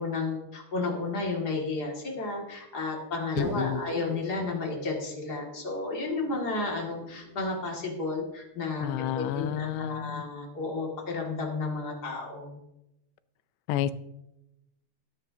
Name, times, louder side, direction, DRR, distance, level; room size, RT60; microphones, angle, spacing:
voice 1, 0.0-8.9 9.1-12.6, left 3 dB, 35° left, -1 dB, 1.8 m, -32 dB
voice 2, 3.3-3.8 8.8-10.2 13.7-13.9, left 11 dB, 90° left, 14 dB, 2.8 m, -30 dB
sound 1, 3.4-8.2, right 5 dB, 75° right, 2.9 m, -42 dB
20.0 x 9.6 x 2.8 m, 0.89 s
omnidirectional pair, 4.8 m